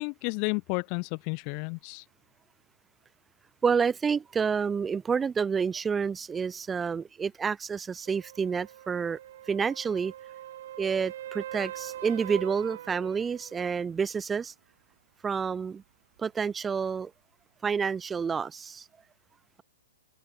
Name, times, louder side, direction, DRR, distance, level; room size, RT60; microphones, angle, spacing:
voice 1, 0.0-2.0, left 40 dB or more, 40° left, 0.7 m, -32 dB
voice 2, 3.6-9.2 9.5-10.1 10.8-14.5 15.2-15.8 16.2-17.1 17.6-18.8, right 6 dB, 15° right, 1.8 m, -29 dB
sound 1, 8.1-13.7 17.8-17.9, right 12 dB, 55° right, 5.6 m, -42 dB
open air
figure-of-eight pair, 120°, 0 cm